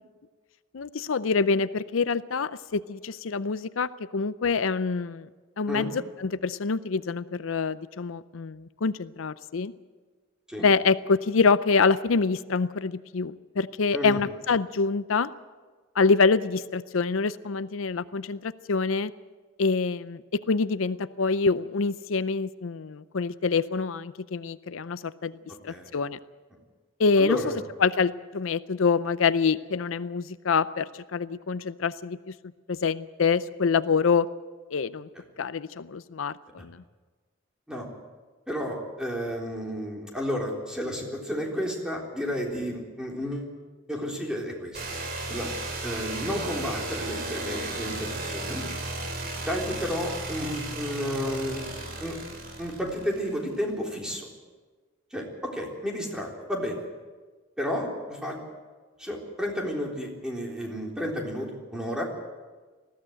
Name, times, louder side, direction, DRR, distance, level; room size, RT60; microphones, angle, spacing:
voice 1, 0.7-5.3 5.6-9.7 10.6-15.3 15.9-19.1 19.6-25.4 25.6-26.2 27.0-27.4 27.8-32.3 32.7-34.3 34.7-35.1 35.4-36.8, left 4 dB, 80° left, 15 dB, 0.6 m, -26 dB
voice 2, 27.2-27.6 37.7-37.9 38.5-43.5 43.9-44.8 45.3-45.5 45.8-48.7 49.4-51.6 52.0-52.1 52.6-54.3 55.1-56.8 57.6-58.4 59.0-62.0, equal, 5° right, -1 dB, 3.7 m, -32 dB
sound 1, 44.7-53.5, right 2 dB, 50° right, 3.6 m, -35 dB
20.0 x 15.0 x 8.9 m, 1.4 s
head